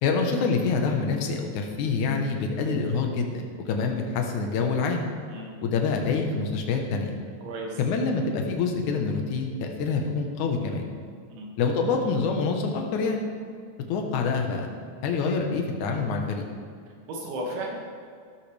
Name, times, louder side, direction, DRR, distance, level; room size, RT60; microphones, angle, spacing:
voice 1, 0.0-3.3 3.7-5.1 5.6-7.1 7.8-10.9 11.6-13.2 13.9-14.7 15.0-16.4, left 4 dB, 75° left, 2 dB, 1.8 m, -26 dB
voice 2, 7.4-7.8 11.3-11.5 17.1-17.8, right 1 dB, 90° right, -2 dB, 4.6 m, -34 dB
15.5 x 13.5 x 3.4 m, 2.2 s
omnidirectional pair, 5.1 m